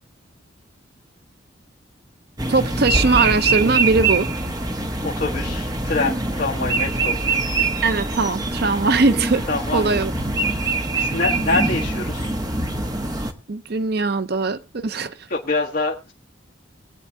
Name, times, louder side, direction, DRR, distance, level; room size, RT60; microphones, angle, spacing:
sound 1, 2.4-13.3, right 3 dB, 20° right, 1.1 m, -23 dB
voice 1, 2.5-4.3 7.8-9.4 9.7-10.1 13.5-15.2, right 3 dB, 55° right, 0.6 m, -20 dB
voice 2, 5.0-7.2 9.5-10.0 10.5-10.7 10.9-12.3 15.3-16.1, left 3 dB, 50° left, 1.2 m, -25 dB
23.0 x 8.4 x 2.8 m
head